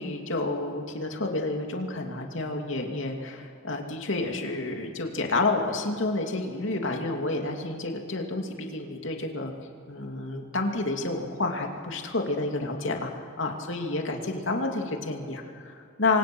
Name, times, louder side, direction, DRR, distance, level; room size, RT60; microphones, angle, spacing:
voice 1, 0.0-9.5 9.9-16.2, left 2 dB, 70° left, 3 dB, 2.6 m, -30 dB
29.0 x 24.5 x 6.2 m, 2.4 s
head